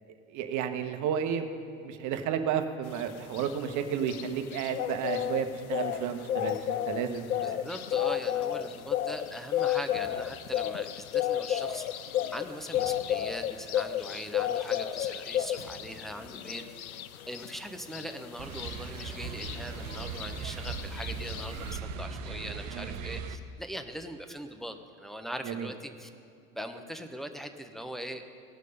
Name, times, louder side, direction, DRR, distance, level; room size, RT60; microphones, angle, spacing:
voice 1, 0.3-1.4 1.8-7.7 22.7-22.9 25.4-25.7, right 8 dB, 45° right, 7 dB, 1.1 m, -32 dB
sound 1, 2.9-21.8, left 11 dB, 85° left, 0.6 m, -33 dB
sound 2, 5.5-7.1 8.4-10.4 10.7-10.8 11.0-13.3 14.3-16.2 16.9-18.2 18.5-19.9, equal, 65° left, 2.7 m, -54 dB
voice 2, 7.4-11.9 12.3-16.6 17.3-26.1 26.5-28.4, equal, ahead, 6 dB, 0.8 m, -41 dB
sound 3, 18.4-23.4, right 5 dB, 70° right, 0.9 m, -38 dB
17.5 x 6.4 x 5.4 m, 2.2 s
hypercardioid pair, 80°, 41 cm